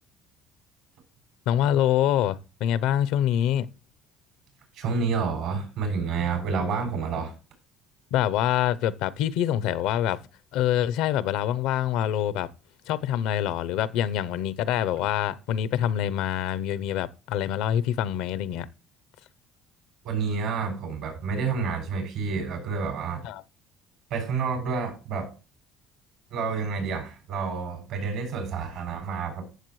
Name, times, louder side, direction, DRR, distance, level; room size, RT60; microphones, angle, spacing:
voice 1, 1.5-3.7 8.1-10.2 10.5-12.5 12.9-18.7 23.2-23.4, left 11 dB, 85° left, 0.7 m, -25 dB
voice 2, 4.7-7.3 20.0-23.2 24.1-25.3 26.3-29.4, right 5 dB, 75° right, 7.1 m, -29 dB
14.5 x 7.4 x 3.2 m
cardioid pair, 105°, 0 cm